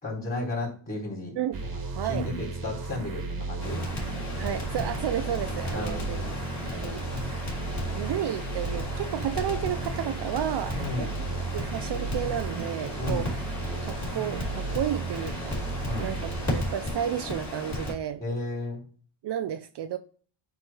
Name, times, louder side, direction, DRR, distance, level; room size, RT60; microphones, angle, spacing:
voice 1, 0.0-1.4 2.1-3.8 5.7-6.5 10.8-11.1 13.0-13.3 15.8-16.2 18.2-18.8, left 2 dB, 15° left, 3.9 m, -33 dB
sound 1, 1.5-17.1, right 4 dB, 40° right, 1.5 m, -35 dB
voice 2, 1.9-2.3 4.4-6.2 6.7-7.3 7.9-11.1 11.5-13.3 13.8-15.6 15.9-18.2 19.2-20.0, right 10 dB, 55° right, 0.6 m, -32 dB
Crackle, 3.6-17.9, left 1 dB, 35° left, 3.0 m, -35 dB
8.9 x 3.4 x 4.3 m
cardioid pair, 135°, 50 cm